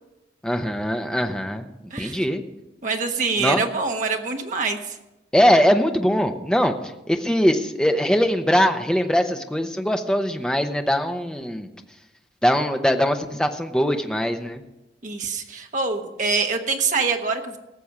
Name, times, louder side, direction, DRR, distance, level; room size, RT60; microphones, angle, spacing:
voice 1, 0.4-1.7 2.0-2.4 3.4-3.6 5.3-6.7 7.1-11.7 12.4-14.6, equal, 5° left, 5 dB, 0.8 m, -21 dB
voice 2, 2.8-5.0 15.0-17.6, right 4 dB, 45° right, 4 dB, 1.3 m, -25 dB
18.0 x 7.0 x 5.9 m, 1.0 s
head